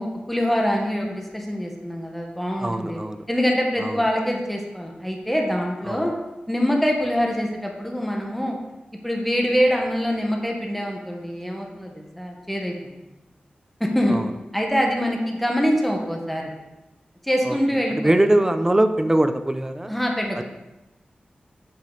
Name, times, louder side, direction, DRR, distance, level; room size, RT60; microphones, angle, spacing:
voice 1, 0.0-3.0 3.3-6.1 6.5-8.6 9.0-12.7 13.8-14.2 14.5-16.5 17.2-18.3 19.9-20.4, equal, 5° left, 0 dB, 1.2 m, -24 dB
voice 2, 2.6-3.2 3.8-4.0 5.9-6.1 14.1-14.3 17.5-17.6 17.9-19.9 20.3-20.4, right 1 dB, 15° right, 9 dB, 0.5 m, -22 dB
7.7 x 5.5 x 3.9 m, 1.0 s
wide cardioid pair, 80°, 3 cm